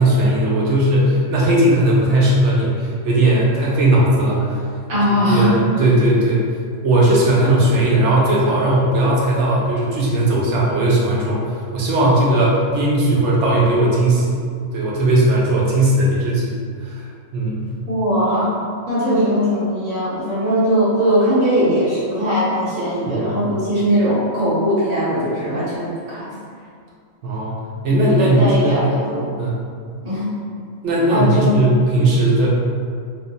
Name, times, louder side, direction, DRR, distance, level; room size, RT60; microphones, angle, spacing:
voice 1, 0.0-4.6 5.3-6.5 6.8-11.4 11.7-14.4 14.7-17.0 17.3-17.7 23.1-23.4 27.2-28.8 29.4-29.6 30.8-32.5, right 1 dB, 70° right, -5 dB, 0.9 m, -17 dB
voice 2, 4.9-5.6 17.9-18.5 18.9-26.3 28.0-29.3 30.0-30.2 31.1-31.5, equal, 85° right, -10 dB, 1.5 m, -19 dB
3.0 x 2.0 x 2.6 m, 2.1 s
omnidirectional pair, 1.4 m